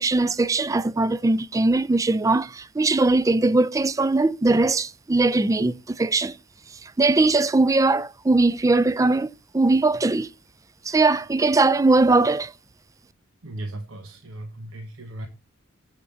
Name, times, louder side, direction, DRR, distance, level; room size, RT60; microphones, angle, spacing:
voice 1, 0.0-6.4 6.8-10.3 10.9-12.5, right 3 dB, 15° right, 0.3 m, -20 dB
voice 2, 13.4-15.3, right 1 dB, 90° right, 1.0 m, -36 dB
7.7 x 7.2 x 3.8 m
head